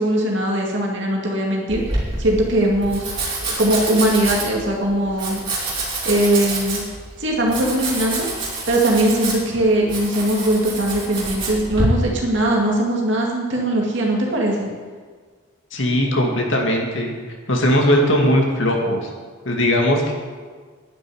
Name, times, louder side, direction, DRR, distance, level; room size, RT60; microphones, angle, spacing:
voice 1, 0.0-3.1 3.6-5.4 6.0-6.9 7.2-14.7, right 1 dB, 65° right, -2 dB, 2.3 m, -20 dB
Domestic sounds home sounds, 1.7-11.8, right 2 dB, 25° right, 3.5 m, -27 dB
voice 2, 15.7-17.1 17.5-19.1 19.5-20.1, equal, 70° left, 1 dB, 2.2 m, -19 dB
11.0 x 6.9 x 9.4 m, 1.5 s
head